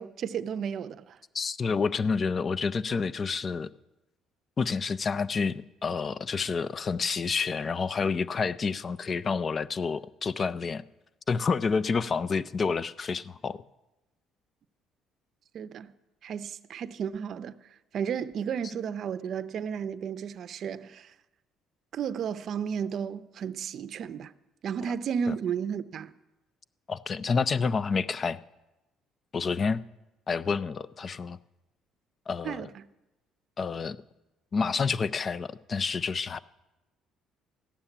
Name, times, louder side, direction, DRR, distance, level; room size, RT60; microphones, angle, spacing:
voice 1, 0.0-1.2 15.5-15.9 16.2-17.6 17.9-21.1 21.9-24.3 24.6-26.1 32.4-32.9, right 7 dB, 55° right, 0.6 m, -33 dB
voice 2, 1.3-3.7 4.6-10.8 11.3-13.6 25.3-25.4 26.9-28.4 29.3-29.8 30.3-31.4 32.3-32.7 33.6-34.0 34.5-36.4, left 5 dB, 35° left, 0.5 m, -29 dB
14.5 x 7.2 x 10.0 m
cardioid pair, 110°, 0 cm